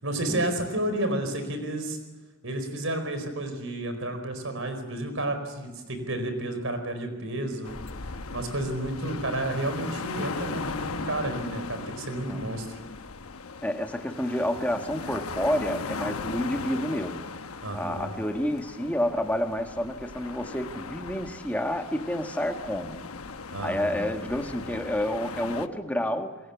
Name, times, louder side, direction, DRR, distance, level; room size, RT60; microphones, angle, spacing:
voice 1, 0.0-2.0 2.4-7.8 8.3-12.7 17.6-18.1 23.5-24.1, right 1 dB, 70° right, 8 dB, 4.7 m, -31 dB
sound 1, 7.6-25.7, left 4 dB, 90° left, 1.0 m, -38 dB
voice 2, 13.6-17.3 17.7-23.0 23.6-26.4, equal, 5° left, 4 dB, 1.6 m, -29 dB
27.5 x 21.5 x 7.2 m, 1.3 s
head